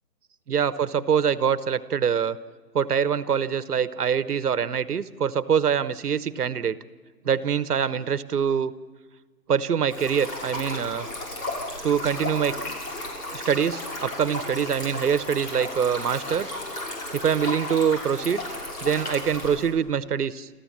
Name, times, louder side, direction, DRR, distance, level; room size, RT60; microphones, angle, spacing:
voice 1, 0.5-2.4 2.7-6.8 7.2-8.7 9.5-11.1 11.8-12.6 13.3-16.5 17.1-18.4 18.8-20.5, right 7 dB, 70° right, 15 dB, 1.0 m, -24 dB
Stream, 9.9-19.7, left 1 dB, 70° left, 6.7 m, -34 dB
28.5 x 14.5 x 7.4 m, 1.4 s
hypercardioid pair, 165°, 48 cm